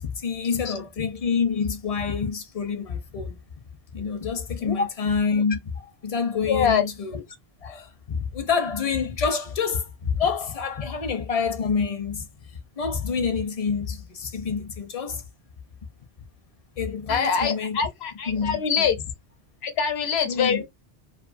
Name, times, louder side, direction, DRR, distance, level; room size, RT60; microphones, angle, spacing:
voice 1, 0.0-3.4 3.9-7.2 7.6-12.3 12.8-15.2 16.8-17.8 18.3-18.9 20.3-20.6, left 5 dB, 45° left, 0.5 m, -27 dB
voice 2, 6.5-6.8 17.1-19.0 19.6-20.6, left 6 dB, 85° left, 1.0 m, -24 dB
2.5 x 2.4 x 2.4 m
omnidirectional pair, 1.0 m